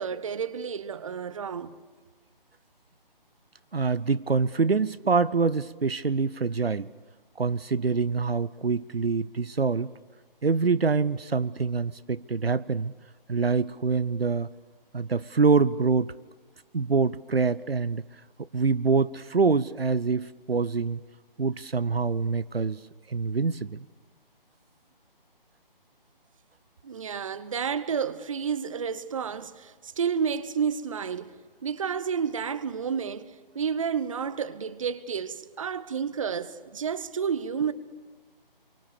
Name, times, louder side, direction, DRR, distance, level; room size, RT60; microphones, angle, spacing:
voice 1, 0.0-1.8 26.8-31.3 31.6-37.7, right 7 dB, 35° right, 0.8 m, -30 dB
voice 2, 3.7-6.9 7.4-9.9 10.4-12.9 13.3-14.5 14.9-16.2 16.7-18.0 18.5-21.0 21.4-22.8 23.1-23.9, right 4 dB, 85° right, 0.8 m, -25 dB
28.0 x 24.0 x 6.9 m
figure-of-eight pair, 150°, 29 cm